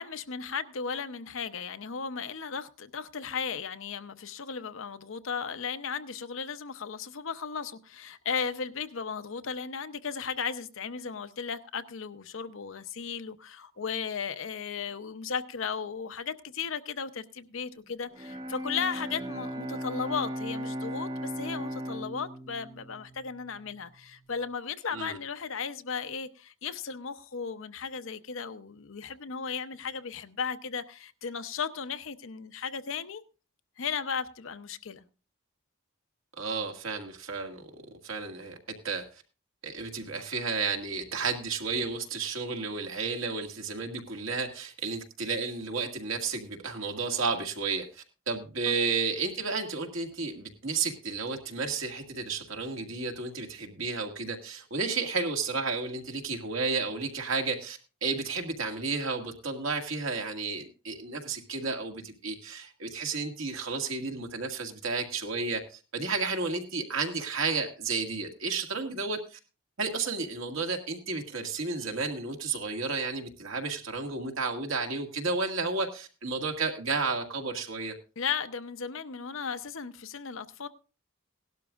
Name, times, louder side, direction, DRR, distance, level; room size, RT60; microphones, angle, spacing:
voice 1, 0.0-33.2 33.8-35.0 48.7-48.8 78.2-80.7, left 6 dB, 70° left, 0.7 m, -35 dB
Bowed string instrument, 18.1-24.1, equal, 20° right, 0.6 m, -37 dB
voice 2, 36.4-37.7 38.0-38.6 38.8-39.0 39.6-69.4 69.8-77.9, right 4 dB, 70° right, 1.9 m, -32 dB
17.5 x 12.0 x 2.4 m
head